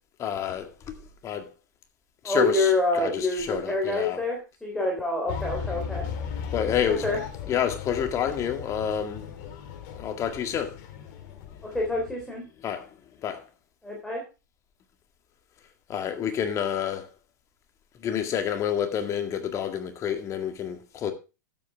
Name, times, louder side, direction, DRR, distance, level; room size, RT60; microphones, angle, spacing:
voice 1, 0.2-1.5 2.2-4.2 6.5-7.1 7.5-9.3 10.0-10.8 12.6-12.9 13.2-13.4 15.9-17.1 18.0-21.1, left 8 dB, 30° left, 1.9 m, -29 dB
voice 2, 2.2-6.0 6.9-7.2 11.6-12.4 13.8-14.2, left 2 dB, 5° left, 3.4 m, -27 dB
sound 1, 5.3-12.3, left 7 dB, 50° left, 2.3 m, -37 dB
12.0 x 8.6 x 3.5 m
hypercardioid pair, 105°, 10 cm